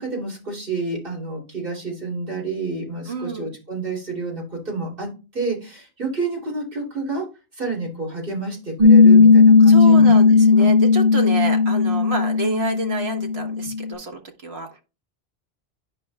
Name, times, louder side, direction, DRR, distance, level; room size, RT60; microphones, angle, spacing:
voice 1, 0.0-7.2 7.6-10.7, right 3 dB, 60° right, -2 dB, 3.2 m, -29 dB
voice 2, 3.1-3.5 9.7-14.7, right 2 dB, 85° right, 4 dB, 1.5 m, -29 dB
Piano, 8.8-13.9, left 4 dB, 45° right, 1.3 m, -14 dB
10.0 x 5.3 x 2.3 m, 0.30 s
omnidirectional pair, 1.0 m